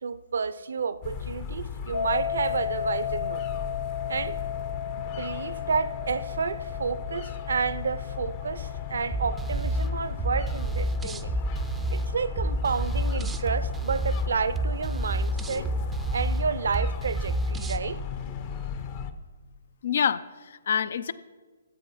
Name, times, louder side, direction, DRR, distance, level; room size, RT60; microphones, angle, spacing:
voice 1, 0.0-3.4 4.1-4.4 5.0-11.4 11.9-15.7 16.1-18.0, right 5 dB, 75° right, 16 dB, 0.6 m, -30 dB
sound 1, 1.0-19.1, left 7 dB, 35° left, 0.8 m, -36 dB
sound 2, 1.9-12.9, left 8 dB, 85° left, 0.8 m, -36 dB
sound 3, 9.1-17.8, right 2 dB, 10° right, 0.5 m, -30 dB
voice 2, 19.8-21.1, left 7 dB, 60° left, 17 dB, 0.5 m, -27 dB
13.0 x 8.3 x 5.7 m, 1.4 s
hypercardioid pair, 140°, 0 cm